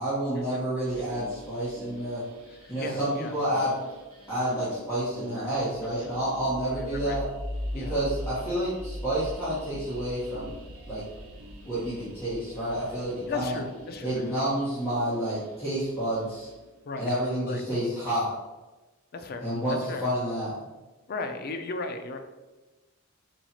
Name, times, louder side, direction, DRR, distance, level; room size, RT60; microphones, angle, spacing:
voice 1, 0.0-2.2 2.7-3.7 4.3-7.3 7.7-10.5 10.9-11.0 11.6-13.6 14.0-16.5 16.9-18.3 19.4-20.5, right 1 dB, 10° left, -13 dB, 1.2 m, -29 dB
sound 1, 0.8-16.7, equal, 75° right, 0.8 m, -42 dB
voice 2, 2.8-3.4 6.0-6.1 6.7-7.2 7.8-8.0 13.3-14.4 16.9-17.1 17.4-17.6 19.1-20.1 21.1-22.2, left 3 dB, 45° left, 6 dB, 0.4 m, -36 dB
4.4 x 2.4 x 4.2 m, 1.2 s
head